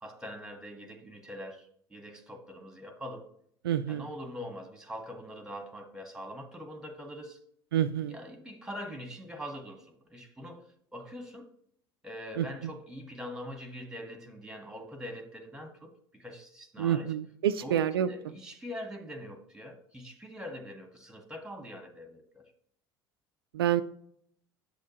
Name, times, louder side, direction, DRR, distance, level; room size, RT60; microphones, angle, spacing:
voice 1, 0.0-3.3 3.9-7.4 8.0-11.5 12.0-17.2 17.6-22.4, equal, 5° right, 6 dB, 1.4 m, -43 dB
voice 2, 3.6-4.0 7.7-8.1 12.4-12.5 16.8-18.1 23.5-23.8, right 10 dB, 70° right, 10 dB, 0.4 m, -27 dB
8.3 x 6.4 x 2.9 m, 0.66 s
figure-of-eight pair, 70°, 13 cm